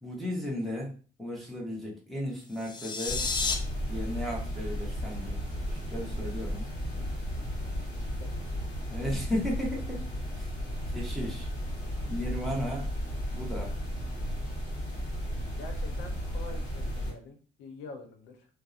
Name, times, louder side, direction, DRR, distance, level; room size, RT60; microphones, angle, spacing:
voice 1, 0.0-0.9 1.2-3.2 3.9-5.4 5.7-6.7 8.9-10.0 10.4-10.5 10.9-11.5 12.1-12.9 13.3-13.7, left 1 dB, ahead, -5 dB, 0.8 m, -35 dB
sound 1, 2.5-3.5, left 4 dB, 25° left, 0.4 m, -31 dB
sound 2, 3.1-17.1, equal, 55° left, 1.4 m, -34 dB
voice 2, 7.6-8.9 10.8-10.9 15.6-18.5, left 3 dB, 85° left, 3 dB, 0.7 m, -47 dB
2.6 x 2.0 x 2.4 m, 0.38 s
cardioid pair, 110°, 17 cm